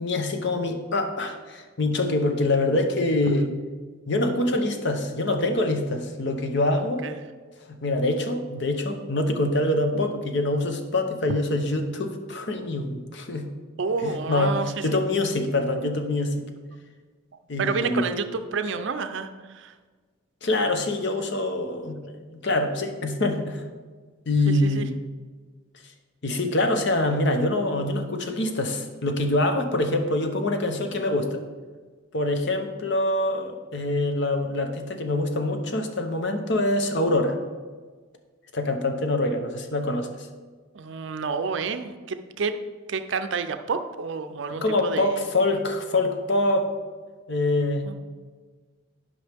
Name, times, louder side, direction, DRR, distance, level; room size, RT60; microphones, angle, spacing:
voice 1, 0.0-3.5 4.1-7.0 7.7-13.5 14.0-16.4 17.5-18.2 20.4-23.7 24.3-24.9 26.2-31.4 32.1-37.4 38.5-40.3 44.6-46.7 47.3-47.9, left 2 dB, 55° left, 5 dB, 0.8 m, -25 dB
voice 2, 13.8-14.8 17.6-19.7 24.5-24.9 40.7-42.5 42.9-45.3 47.8-47.9, right 5 dB, 60° right, 9 dB, 0.5 m, -29 dB
11.0 x 5.4 x 3.5 m, 1.4 s
head